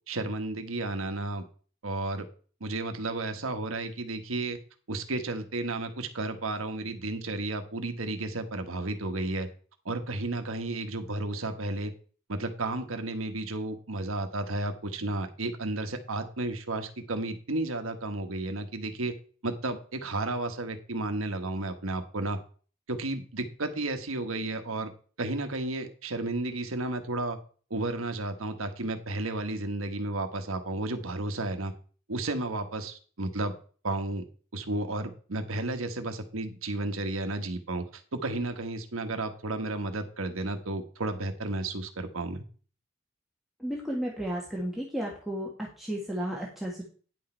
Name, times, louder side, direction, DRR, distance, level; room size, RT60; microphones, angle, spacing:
voice 1, 0.1-1.4 1.8-2.3 2.6-4.6 4.9-9.5 9.8-11.9 12.3-19.1 19.4-22.4 22.9-24.9 25.2-27.4 27.7-31.7 32.1-33.5 33.8-34.2 34.5-42.4, right 2 dB, 90° right, 7 dB, 1.3 m, -32 dB
voice 2, 43.6-45.5 45.8-46.8, equal, ahead, -3 dB, 1.5 m, -33 dB
10.0 x 6.1 x 4.4 m, 0.41 s
head